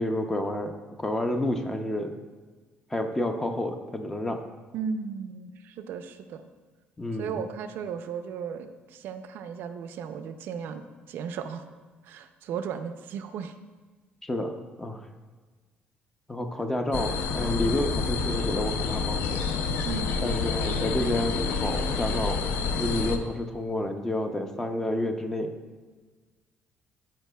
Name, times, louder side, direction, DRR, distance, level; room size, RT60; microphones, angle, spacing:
voice 1, 0.0-2.1 2.9-4.4 7.0-7.4 14.2-14.5 14.8-15.0 16.3-19.4 20.2-22.4 22.8-25.5, left 1 dB, 10° left, 6 dB, 0.4 m, -29 dB
voice 2, 4.7-6.5 7.2-11.6 12.0-13.5 19.8-20.2, right 6 dB, 65° right, 9 dB, 0.4 m, -35 dB
sound 1, 16.9-23.2, left 5 dB, 80° left, 0.5 m, -28 dB
13.0 x 4.8 x 2.2 m, 1.4 s
cardioid pair, 165°, 4 cm